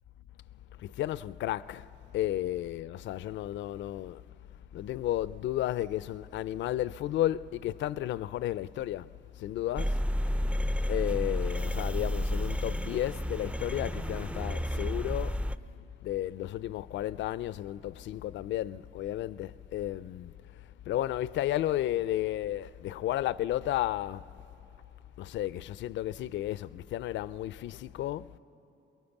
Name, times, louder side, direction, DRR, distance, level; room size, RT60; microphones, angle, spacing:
voice 1, 0.8-4.2 4.7-10.1 10.9-20.3 20.6-24.3 25.2-28.4, left 13 dB, 70° left, 0.4 m, -33 dB
sound 1, 9.8-15.6, equal, 5° right, 0.4 m, -31 dB
23.0 x 22.5 x 7.2 m
cardioid pair, 90°, 20 cm